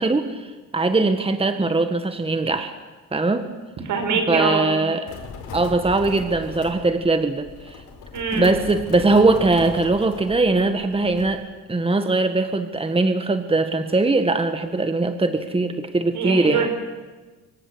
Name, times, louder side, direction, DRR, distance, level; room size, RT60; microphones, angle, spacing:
voice 1, 0.0-2.7 3.1-3.5 4.3-5.1 5.5-7.8 8.3-11.4 11.7-16.7, right 3 dB, 20° right, 8 dB, 1.7 m, -21 dB
voice 2, 3.8-4.7 8.1-8.5 16.1-16.7, right 4 dB, 75° right, 5 dB, 6.2 m, -23 dB
sound 1, 5.1-11.3, left 5 dB, 80° left, 5.3 m, -38 dB
25.5 x 23.5 x 8.2 m, 1.3 s
cardioid pair, 90°, 30 cm